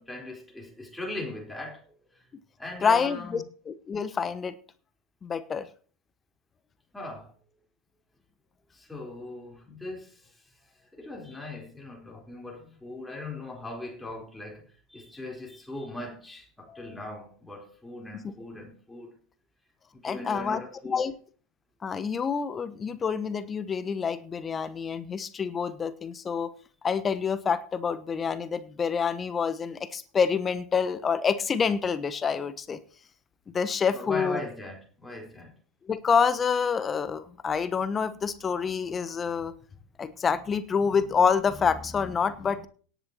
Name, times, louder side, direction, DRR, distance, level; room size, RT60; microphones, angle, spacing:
voice 1, 0.0-1.8 2.1-2.3 2.6-3.4 6.9-7.3 8.7-19.2 19.9-21.1 33.9-35.5, left 2 dB, 5° left, 4.0 m, -40 dB
voice 2, 2.8-4.5 5.2-5.7 18.1-18.3 20.0-21.1 21.8-26.5 26.8-32.8 33.5-34.4 35.9-39.5 40.0-42.7, left 6 dB, 25° left, 1.1 m, -27 dB
17.5 x 10.0 x 2.9 m
figure-of-eight pair, 85°, 0 cm